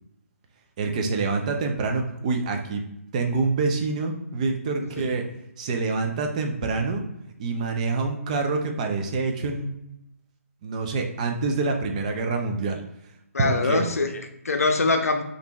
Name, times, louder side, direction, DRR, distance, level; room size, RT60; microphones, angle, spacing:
voice 1, 0.8-2.8 3.1-5.2 5.6-7.0 7.4-9.7 10.6-12.8 13.4-13.9, right 3 dB, 30° right, 3 dB, 0.4 m, -26 dB
voice 2, 13.3-15.2, left 3 dB, 75° left, 6 dB, 0.5 m, -23 dB
3.3 x 2.5 x 2.9 m, 0.83 s
figure-of-eight pair, 150°, 8 cm